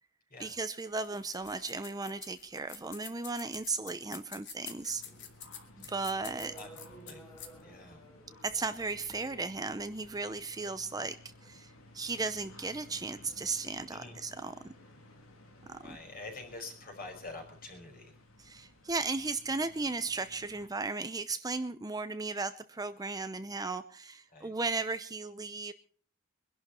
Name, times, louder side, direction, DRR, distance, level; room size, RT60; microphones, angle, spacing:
voice 1, 0.4-5.0 5.8-6.5 8.4-14.5 15.7-16.0 18.4-25.7, right 3 dB, 20° right, 10 dB, 0.7 m, -36 dB
sound 1, 0.9-7.6, left 8 dB, 60° left, 2.4 m, -48 dB
sound 2, 4.9-20.7, left 1 dB, 90° left, 2.9 m, -56 dB
sound 3, 5.1-14.5, right 1 dB, 15° left, 3.3 m, -57 dB
voice 2, 7.6-8.0 13.9-14.2 15.8-18.1 24.3-24.5, left 2 dB, 45° left, 4 dB, 5.3 m, -46 dB
23.0 x 11.5 x 4.4 m, 0.43 s
head